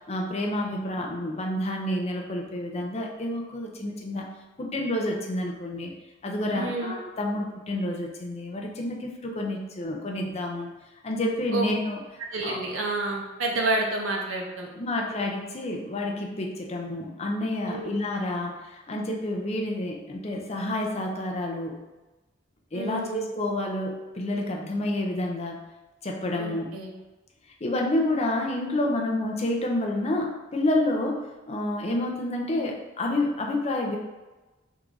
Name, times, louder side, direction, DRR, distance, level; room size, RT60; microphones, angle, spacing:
voice 1, 0.1-4.3 4.6-5.9 6.2-10.7 11.0-12.0 12.4-12.6 14.8-21.8 22.7-25.6 26.0-26.8 27.6-34.0, left 1 dB, 35° left, 1 dB, 0.6 m, -29 dB
voice 2, 6.5-6.9 11.5-11.7 12.3-14.7 17.7-18.0 22.7-23.3 26.4-26.9, right 2 dB, 75° right, 0 dB, 0.7 m, -29 dB
3.6 x 2.5 x 4.6 m, 1.1 s
head